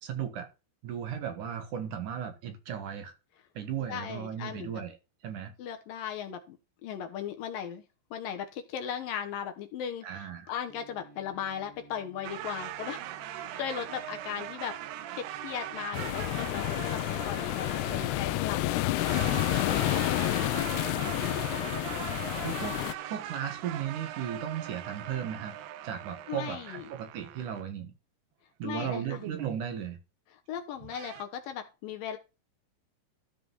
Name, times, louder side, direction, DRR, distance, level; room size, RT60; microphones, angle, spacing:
voice 1, 0.0-0.5 0.8-3.1 3.5-5.0 5.2-5.5 10.0-10.5 17.9-18.2 22.4-22.8 23.1-25.6 25.8-27.9 28.6-30.0, right 9 dB, 60° right, 2.6 m, -36 dB
voice 2, 3.9-4.8 5.6-6.6 6.8-7.8 8.1-13.0 13.3-14.8 15.1-18.8 19.6-21.3 26.3-26.9 28.6-29.2 30.5-32.2, left 8 dB, 70° left, 2.5 m, -38 dB
sound 1, 10.7-25.4, right 2 dB, 20° right, 2.4 m, -56 dB
sound 2, 12.2-18.6 18.9-27.6 28.8-29.6 30.8-31.2, right 12 dB, 80° right, 2.7 m, -40 dB
sound 3, 15.9-22.9, left 17 dB, 85° left, 2.7 m, -30 dB
13.5 x 5.0 x 5.5 m
omnidirectional pair, 4.6 m